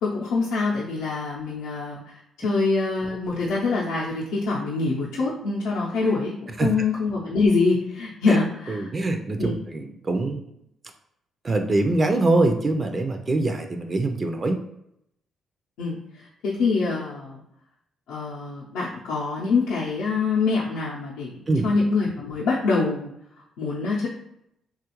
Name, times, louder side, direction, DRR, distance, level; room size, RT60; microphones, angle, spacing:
voice 1, 0.0-8.9 9.4-9.6 15.8-17.4 18.1-23.1 23.6-24.1, left 3 dB, 90° left, -6 dB, 0.5 m, -25 dB
voice 2, 8.7-10.4 11.4-14.6 21.5-21.7, right 2 dB, 35° right, 6 dB, 0.4 m, -23 dB
3.1 x 2.3 x 3.0 m, 0.77 s
cardioid pair, 90°, 0 cm